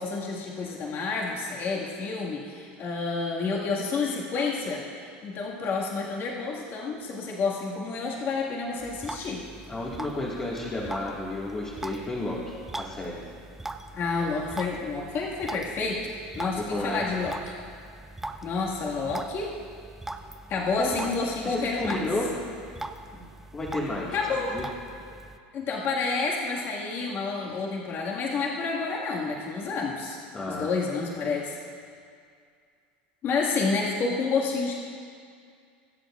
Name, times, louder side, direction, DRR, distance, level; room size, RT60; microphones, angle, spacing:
voice 1, 0.0-9.4 14.0-17.5 18.4-19.5 20.5-22.0 24.1-24.5 25.1-25.2 25.5-30.2 30.5-31.6 33.2-34.8, left 4 dB, 45° left, -3 dB, 1.8 m, -29 dB
sound 1, 8.8-25.4, right 2 dB, 5° right, 0.5 m, -41 dB
voice 2, 9.7-13.2 16.6-17.1 20.8-21.1 21.4-22.5 23.1-23.3 23.5-24.6 30.3-30.8, left 2 dB, 25° left, -5 dB, 1.8 m, -32 dB
22.0 x 7.9 x 2.5 m, 2.2 s
supercardioid pair, 105°, 5 cm